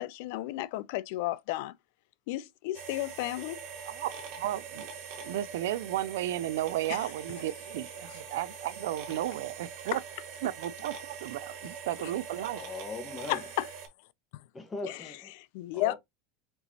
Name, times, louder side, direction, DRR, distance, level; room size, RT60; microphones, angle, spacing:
voice 1, 0.0-1.7 2.3-3.6 6.9-7.0 13.3-13.7 14.8-15.0 15.4-15.9, left 16 dB, 70° left, 0.4 m, -33 dB
sound 1, 2.7-13.9, right 6 dB, 55° right, 1.5 m, -43 dB
voice 2, 4.4-4.9 5.2-10.0 10.4-12.6, right 14 dB, 90° right, 0.4 m, -34 dB
voice 3, 12.5-13.4 14.5-15.3 15.7-16.0, left 3 dB, 15° left, 1.1 m, -40 dB
4.4 x 3.9 x 2.7 m
supercardioid pair, 145°, 0 cm